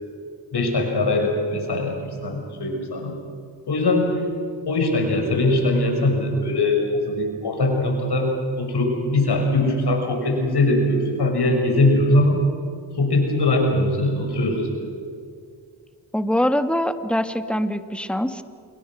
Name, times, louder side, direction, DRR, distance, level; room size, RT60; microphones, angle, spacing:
voice 1, 0.5-3.1 3.7-4.1 4.7-8.3 8.6-12.4 12.9-14.7, left 2 dB, 55° left, 2 dB, 6.3 m, -21 dB
voice 2, 16.1-18.4, equal, ahead, 9 dB, 1.7 m, -23 dB
28.0 x 22.0 x 6.3 m, 2.3 s
supercardioid pair, 50°, 47 cm